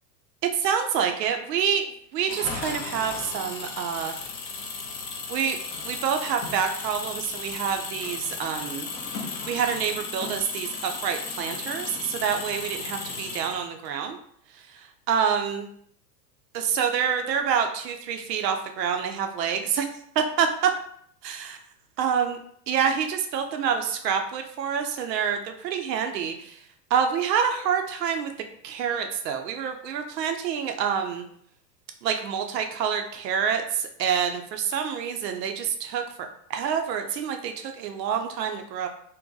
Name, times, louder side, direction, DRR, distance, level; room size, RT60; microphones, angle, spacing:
voice 1, 0.5-4.1 5.3-5.6 5.8-8.9 9.5-14.2 15.1-15.7 16.5-19.9 20.2-20.7 21.2-21.5 22.0-22.4 22.7-26.6 26.9-28.3 28.6-31.2 32.0-38.9, right 7 dB, 75° right, 5 dB, 0.6 m, -27 dB
Engine, 2.2-13.9, left 4 dB, 25° left, 0.3 m, -35 dB
2.6 x 2.1 x 3.8 m, 0.65 s
hypercardioid pair, 95°, 50 cm